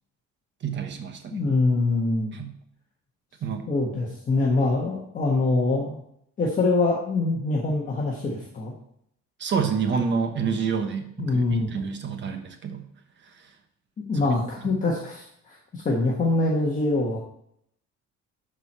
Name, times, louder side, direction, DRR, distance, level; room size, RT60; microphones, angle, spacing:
voice 1, 0.6-1.4 2.3-2.5 3.4-3.7 9.4-12.9 13.4-13.5 14.6-14.7, right 6 dB, 40° right, 5 dB, 1.2 m, -28 dB
voice 2, 1.3-2.4 3.7-6.0 6.4-8.7 11.2-11.7 14.0-17.2, left 3 dB, 25° left, -3 dB, 1.4 m, -24 dB
12.5 x 4.6 x 4.3 m, 0.72 s
cardioid pair, 165°, 29 cm